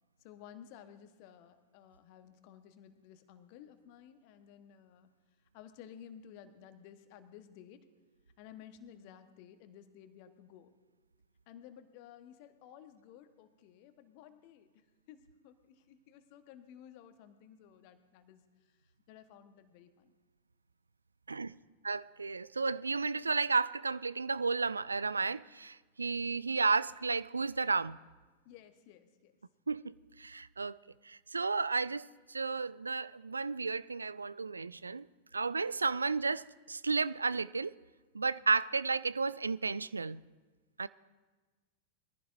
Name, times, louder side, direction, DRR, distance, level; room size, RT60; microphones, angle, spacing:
voice 1, 0.2-5.1 5.5-7.9 8.4-10.7 11.5-18.4 18.7-20.1 28.4-29.3, left 9 dB, 45° left, 1.3 m, -55 dB
voice 2, 21.8-28.0 29.7-30.8 31.0-35.1 35.3-37.7 38.1-40.2 40.8-40.9, right 4 dB, 75° right, 0.3 m, -33 dB
22.0 x 15.0 x 2.6 m
figure-of-eight pair, 90°, 0 cm